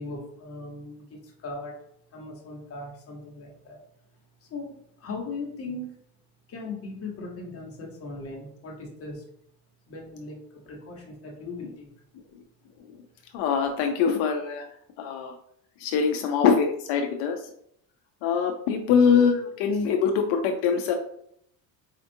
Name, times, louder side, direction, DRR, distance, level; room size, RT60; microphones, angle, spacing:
voice 1, 0.0-1.8 2.1-3.8 4.4-6.0 6.5-9.2 9.9-10.4 10.6-11.9, left 3 dB, 35° left, -1 dB, 1.0 m, -38 dB
voice 2, 13.3-14.7 15.0-15.3 15.8-17.4 18.2-20.9, left 6 dB, 80° left, 3 dB, 0.5 m, -23 dB
4.4 x 2.4 x 2.6 m, 0.69 s
cardioid pair, 145°, 39 cm